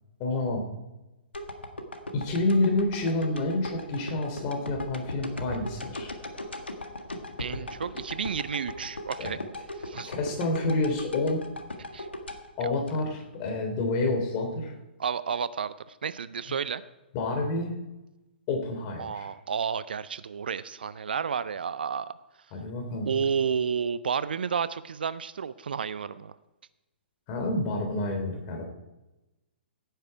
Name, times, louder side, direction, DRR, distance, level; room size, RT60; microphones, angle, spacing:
voice 1, 0.2-0.6 2.1-6.1 9.2-9.4 10.0-11.4 12.6-14.7 17.1-17.7 18.5-19.3 22.5-23.1 27.3-28.6, left 2 dB, 30° left, 3 dB, 3.1 m, -28 dB
sound 1, 1.3-13.5 13.9-14.0, left 1 dB, 80° left, 1.6 m, -38 dB
voice 2, 7.4-9.4 9.8-10.1 11.8-12.1 15.0-16.8 19.0-22.1 23.0-26.3, right 6 dB, 60° right, 16 dB, 0.5 m, -31 dB
16.0 x 9.3 x 4.7 m, 1.0 s
figure-of-eight pair, 120°, 6 cm